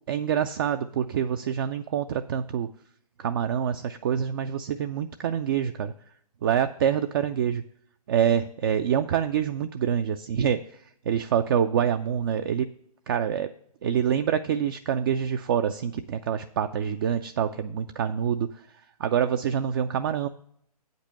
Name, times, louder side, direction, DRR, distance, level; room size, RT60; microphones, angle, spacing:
voice 1, 0.1-2.7 3.2-5.9 6.4-7.6 8.1-12.7 13.1-13.5 13.8-20.3, right 8 dB, 35° right, 8 dB, 0.4 m, -26 dB
8.5 x 5.3 x 6.7 m, 0.65 s
figure-of-eight pair, 125°, 20 cm